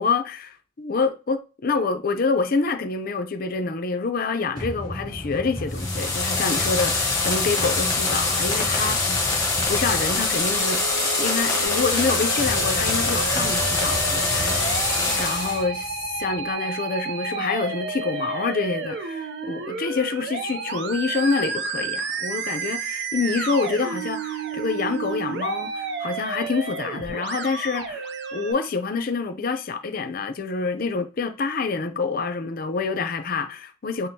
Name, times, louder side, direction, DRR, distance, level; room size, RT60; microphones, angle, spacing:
voice 1, 0.0-9.3 9.7-10.8 11.2-34.1, left 4 dB, 45° left, 0.5 m, -27 dB
sound 1, 4.6-16.5, equal, 25° right, 2.0 m, -34 dB
sound 2, 5.7-15.6, left 3 dB, 15° left, 1.1 m, -24 dB
Musical instrument, 10.6-28.5, right 5 dB, 60° right, 0.5 m, -31 dB
6.1 x 2.0 x 2.7 m
head